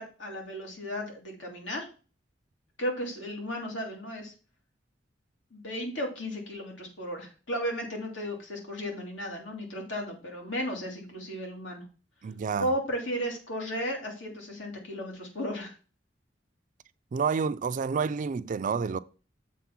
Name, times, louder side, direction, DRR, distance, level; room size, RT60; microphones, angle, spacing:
voice 1, 0.0-1.9 2.8-4.3 5.5-11.9 12.6-15.7, equal, 90° left, 2.5 m, -34 dB
voice 2, 12.2-12.7 17.1-19.0, right 5 dB, 45° right, 0.3 m, -29 dB
7.2 x 3.8 x 5.8 m
head